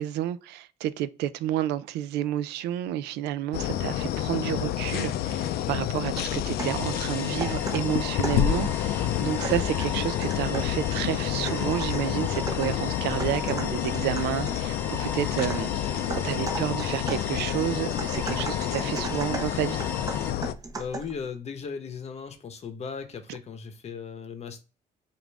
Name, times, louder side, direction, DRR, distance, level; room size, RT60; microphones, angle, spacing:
voice 1, 0.0-19.8, right 12 dB, 85° right, 0.4 m, -30 dB
sound 1, 3.5-20.5, left 12 dB, 70° left, 0.4 m, -29 dB
sound 2, 6.1-6.9 7.4-8.5 9.4-10.8 11.5-14.7 15.4-21.2, right 3 dB, 20° right, 0.8 m, -38 dB
sound 3, 6.6-20.3, left 2 dB, 10° left, 0.6 m, -39 dB
voice 2, 20.8-24.6, left 6 dB, 40° left, 0.8 m, -37 dB
5.1 x 2.5 x 3.4 m
cardioid pair, 110°, 17 cm